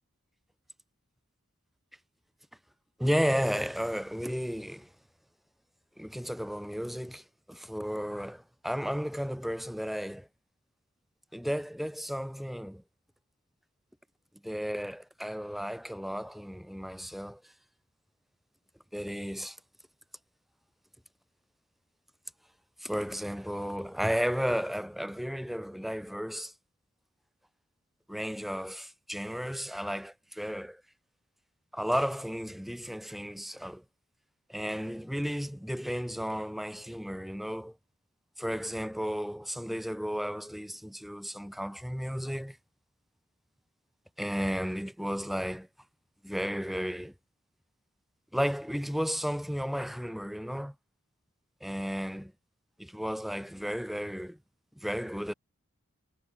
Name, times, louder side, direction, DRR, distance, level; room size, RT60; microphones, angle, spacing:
voice 1, 3.0-4.9 6.0-10.3 11.3-12.8 14.4-17.4 18.9-19.6 22.8-26.5 28.1-30.8 31.7-33.8 34.5-37.8 38.4-42.6 44.2-45.7 46.2-47.1 48.3-50.7 51.6-52.3 52.8-54.4 54.8-55.3, equal, ahead, 1.3 m, -33 dB
head